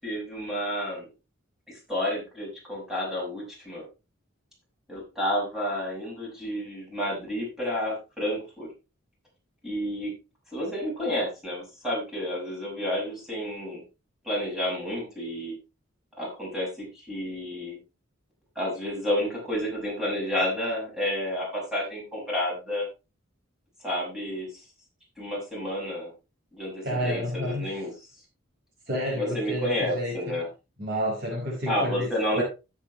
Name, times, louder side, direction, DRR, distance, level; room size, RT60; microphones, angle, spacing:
voice 1, 0.0-1.0 1.7-3.8 4.9-8.7 9.6-10.1 10.5-13.8 14.2-15.5 16.2-17.8 18.5-22.9 23.8-24.6 25.2-26.1 26.5-27.9 29.2-30.5 31.7-32.4, left 1 dB, ahead, 6.3 m, -30 dB
voice 2, 26.8-27.8 28.9-30.3 30.8-32.1 32.3-32.4, equal, 50° right, 5.1 m, -30 dB
16.0 x 7.5 x 3.2 m
head